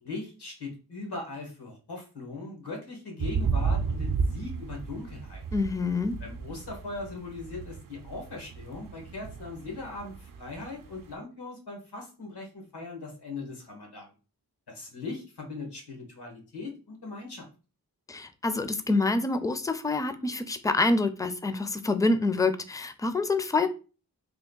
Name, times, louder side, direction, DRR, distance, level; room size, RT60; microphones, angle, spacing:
voice 1, 0.0-5.4 6.2-14.1 14.7-17.5, left 3 dB, 80° left, 1.5 m, -40 dB
sound 1, 3.2-11.1, right 5 dB, 60° right, 0.5 m, -33 dB
voice 2, 5.5-6.2 18.1-23.7, left 3 dB, 10° left, 0.4 m, -26 dB
3.5 x 2.3 x 3.7 m
cardioid pair, 45°, 39 cm